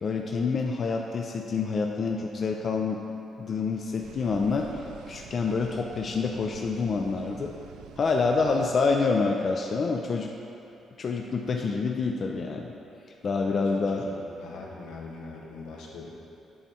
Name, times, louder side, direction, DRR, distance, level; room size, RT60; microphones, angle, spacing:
voice 1, 0.0-3.0 3.4-7.5 8.0-10.3 11.0-12.7 13.2-14.1, left 4 dB, 45° left, 2 dB, 0.4 m, -27 dB
sound 1, 4.0-9.0, right 7 dB, 85° right, 0.3 m, -47 dB
voice 2, 13.5-14.1 14.4-16.1, left 3 dB, 85° left, -2 dB, 0.9 m, -42 dB
8.5 x 3.4 x 4.2 m, 2.8 s
cardioid pair, 90°, 0 cm